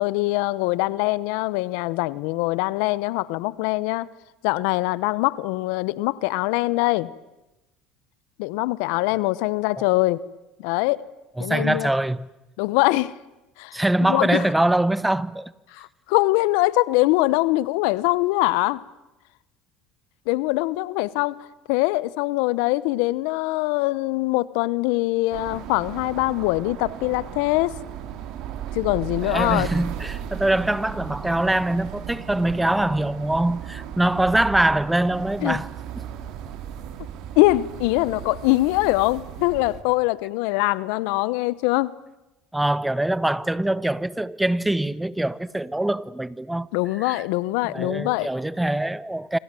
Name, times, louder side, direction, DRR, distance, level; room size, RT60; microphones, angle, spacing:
voice 1, 0.0-4.1 4.4-7.1 8.4-10.2 10.6-11.0 11.4-11.9 12.6-13.1 13.6-14.4 15.7-18.8 20.3-21.3 21.7-27.7 28.7-29.7 35.4-35.6 37.4-41.9 46.7-48.3, left 20 dB, 80° left, 0.9 m, -23 dB
voice 2, 11.4-12.3 13.7-15.5 29.3-35.7 36.0-36.1 42.5-46.7 47.0-47.2 47.7-49.4, right 1 dB, 5° right, 0.9 m, -23 dB
sound 1, 25.3-39.8, right 9 dB, 65° right, 3.1 m, -36 dB
26.5 x 26.5 x 7.7 m
supercardioid pair, 95°, 0 cm